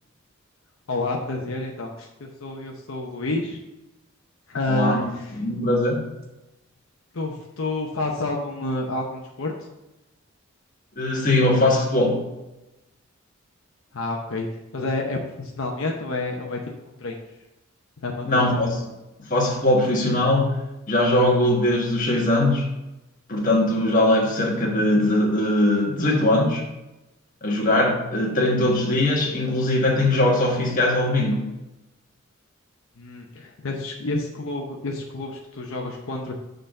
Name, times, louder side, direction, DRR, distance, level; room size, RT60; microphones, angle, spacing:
voice 1, 0.9-3.6 4.5-5.3 7.1-9.7 13.9-14.5 14.7-16.6 17.0-17.1 18.0-18.4 33.0-36.4, left 2 dB, 75° left, 0 dB, 0.7 m, -29 dB
voice 2, 4.7-6.0 11.0-12.2 18.2-18.9 19.2-20.6 20.9-22.7 23.3-26.7 27.4-31.5, left 1 dB, 40° left, -1 dB, 1.5 m, -21 dB
6.6 x 4.0 x 6.4 m, 0.98 s
head